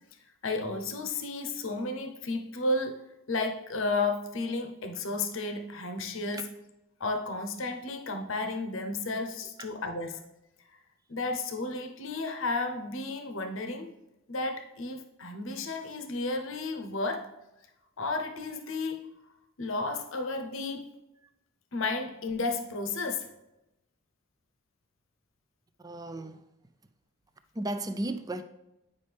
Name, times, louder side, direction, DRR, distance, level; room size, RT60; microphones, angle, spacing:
voice 1, 0.4-3.0 3.3-6.4 7.0-10.2 11.1-13.9 14.3-17.3 18.0-19.0 19.6-20.9 21.7-23.3, left 3 dB, 70° left, 0.8 m, -32 dB
voice 2, 25.8-26.4 27.5-28.4, right 1 dB, 15° right, 0.4 m, -34 dB
9.4 x 5.3 x 3.4 m
head